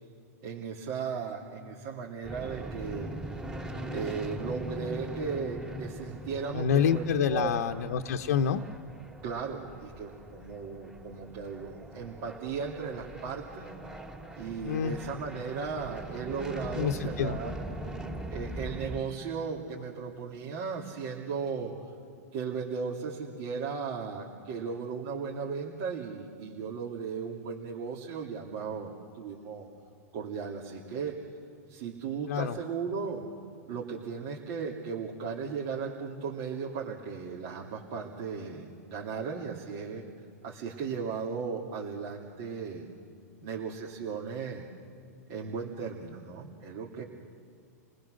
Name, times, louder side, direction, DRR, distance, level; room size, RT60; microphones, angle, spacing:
voice 1, 0.4-3.1 3.9-7.8 9.2-13.8 14.4-17.6 18.3-21.7 22.3-29.7 30.1-31.2 31.7-33.2 33.7-40.0 40.4-42.9 43.4-44.7 45.3-47.0, right 5 dB, 50° right, -3 dB, 2.9 m, -36 dB
sound 1, 2.2-19.0, right 1 dB, 10° right, 3.5 m, -41 dB
voice 2, 6.5-8.6 14.6-15.0 16.8-17.4 32.3-32.6, left 8 dB, 75° left, 5 dB, 1.0 m, -27 dB
30.0 x 19.5 x 6.6 m, 2.5 s
hypercardioid pair, 130°, 9 cm